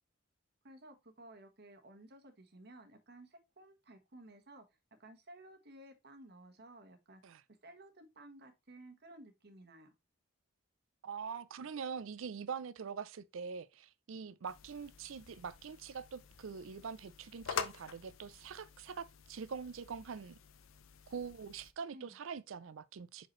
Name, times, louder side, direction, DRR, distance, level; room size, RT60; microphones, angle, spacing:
voice 1, 0.6-4.6 5.0-7.2 7.6-9.9 21.9-22.2, right 1 dB, 55° right, 1.2 m, -55 dB
voice 2, 11.0-20.4 21.1-23.3, right 6 dB, 75° right, 0.5 m, -44 dB
sound 1, 14.4-21.7, left 7 dB, 80° left, 0.6 m, -47 dB
5.9 x 5.1 x 3.1 m
head